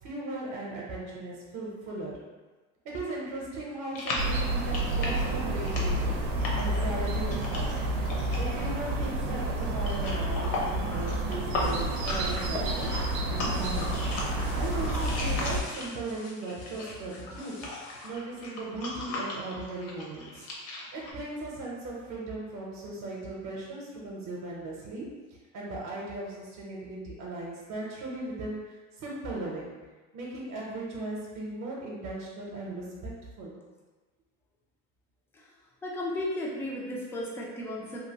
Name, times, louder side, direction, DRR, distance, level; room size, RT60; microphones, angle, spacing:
voice 1, 0.0-2.2 2.8-6.1 6.5-7.7 8.4-13.9 14.5-17.5 18.0-20.5 20.9-25.1 25.5-29.7 30.1-33.1 33.4-33.6, right 2 dB, 45° right, -3 dB, 0.7 m, -37 dB
sound 1, 3.9-16.1 16.4-21.1, left 2 dB, 60° left, 0.9 m, -37 dB
sound 2, 4.2-15.6, right 1 dB, 80° right, 0.6 m, -30 dB
sound 3, 11.6-18.1, left 3 dB, 90° left, 0.7 m, -49 dB
voice 2, 35.8-38.0, left 1 dB, 5° left, -3 dB, 0.3 m, -34 dB
2.8 x 2.4 x 2.8 m, 1.3 s
supercardioid pair, 125°, 38 cm